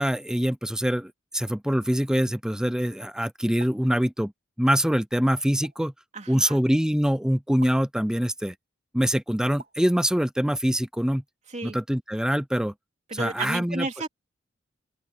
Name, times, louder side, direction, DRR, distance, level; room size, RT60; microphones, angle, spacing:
voice 1, 0.0-4.3 4.6-5.9 6.3-8.6 8.9-11.2 11.6-12.7 13.1-13.9, equal, 5° right, 0.6 m, -24 dB
sound 1, 3.6-3.9 5.6-6.0 7.6-7.8 9.6-9.9, right 4 dB, 55° right, 2.6 m, -47 dB
voice 2, 6.1-6.6 11.5-11.8 13.1-14.1, right 3 dB, 35° right, 3.4 m, -32 dB
open air
head